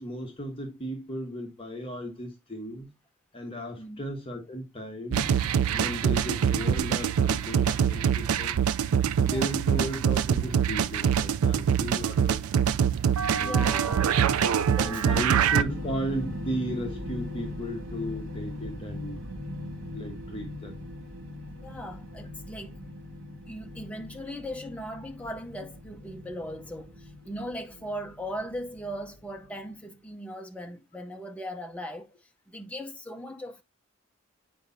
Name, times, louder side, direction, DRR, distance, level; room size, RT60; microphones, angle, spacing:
voice 1, 0.0-2.9 3.3-8.6 9.2-12.5 13.3-13.9 14.8-19.2 19.9-20.8, equal, 25° left, 1.2 m, -35 dB
sound 1, 5.1-15.6, right 8 dB, 90° right, 0.4 m, -24 dB
voice 2, 9.2-9.6 13.4-14.0 14.7-15.3 21.6-22.8 23.5-32.1 32.5-33.6, equal, 5° left, 0.7 m, -38 dB
sound 2, 15.6-29.6, left 1 dB, 65° right, 1.8 m, -40 dB
7.7 x 5.1 x 2.6 m
head